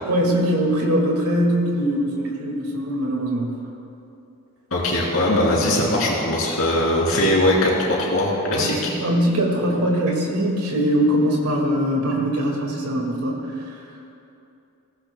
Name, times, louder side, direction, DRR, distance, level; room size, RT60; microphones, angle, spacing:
voice 1, 0.0-3.5 8.5-13.8, equal, 90° right, -1 dB, 2.0 m, -22 dB
voice 2, 4.7-8.9, left 1 dB, 70° left, -4 dB, 3.3 m, -20 dB
17.5 x 16.0 x 2.2 m, 2.7 s
head